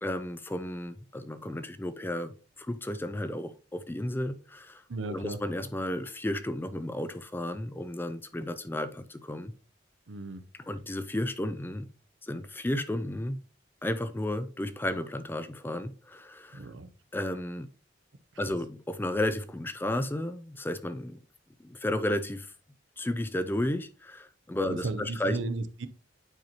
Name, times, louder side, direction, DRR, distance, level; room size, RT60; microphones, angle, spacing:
voice 1, 0.0-2.3 2.6-4.8 5.1-9.5 10.7-11.9 12.2-13.4 13.8-16.7 17.1-17.7 18.4-21.2 21.6-22.5 23.0-25.4, left 1 dB, 10° left, 0.4 m, -33 dB
voice 2, 4.9-5.4 10.1-10.4 16.5-16.9 18.5-18.6 24.7-25.9, right 3 dB, 85° right, 0.7 m, -35 dB
9.1 x 4.4 x 2.8 m
head